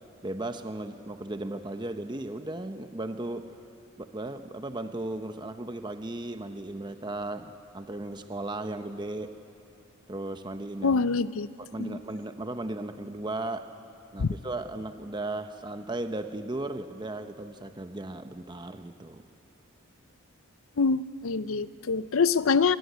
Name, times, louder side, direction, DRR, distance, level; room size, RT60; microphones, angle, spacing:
voice 1, 0.2-3.4 4.0-9.3 10.1-11.0 11.7-13.7 14.1-19.2, right 2 dB, 20° right, 8 dB, 0.7 m, -36 dB
voice 2, 10.8-11.5 11.8-12.0 14.2-14.3 20.8-22.8, left 5 dB, 65° left, 16 dB, 0.6 m, -25 dB
23.0 x 23.0 x 9.3 m, 2.7 s
head